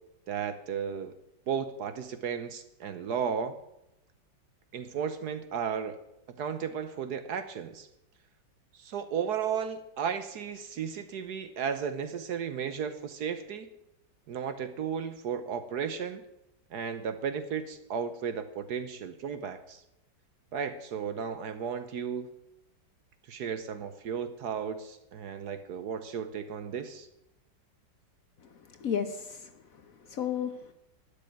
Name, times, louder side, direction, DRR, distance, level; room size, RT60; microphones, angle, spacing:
voice 1, 0.3-1.1 1.5-3.6 4.7-6.0 6.3-7.9 8.7-13.7 14.3-16.2 16.7-19.8 20.5-22.3 23.3-27.1, right 7 dB, 60° right, 10 dB, 1.3 m, -34 dB
voice 2, 28.4-30.7, left 8 dB, 55° left, 8 dB, 1.1 m, -35 dB
12.0 x 6.6 x 9.3 m, 0.87 s
omnidirectional pair, 2.1 m